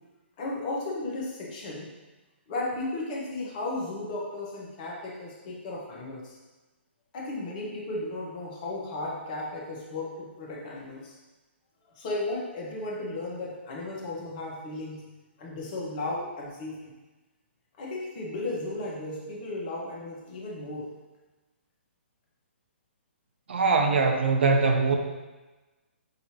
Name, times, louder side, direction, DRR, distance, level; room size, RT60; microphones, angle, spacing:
voice 1, 0.4-1.9 2.5-6.4 7.1-11.1 12.0-15.0 15.4-16.9 17.8-20.9, left 2 dB, 40° left, -4 dB, 1.2 m, -35 dB
voice 2, 23.5-25.0, right 4 dB, 65° right, 4 dB, 0.6 m, -22 dB
5.4 x 2.8 x 3.0 m, 1.2 s
figure-of-eight pair, 135°, 7 cm